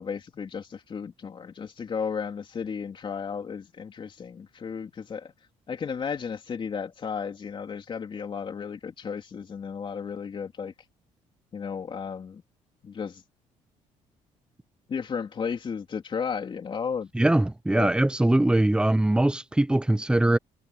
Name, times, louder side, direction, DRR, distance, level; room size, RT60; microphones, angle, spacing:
voice 1, 0.0-5.3 5.7-10.7 11.5-12.4 12.8-13.2 14.9-17.1 17.7-17.9, left 6 dB, 35° left, 3.2 m, -34 dB
voice 2, 17.1-20.4, right 1 dB, 5° right, 0.9 m, -22 dB
cardioid pair, 120°, 14 cm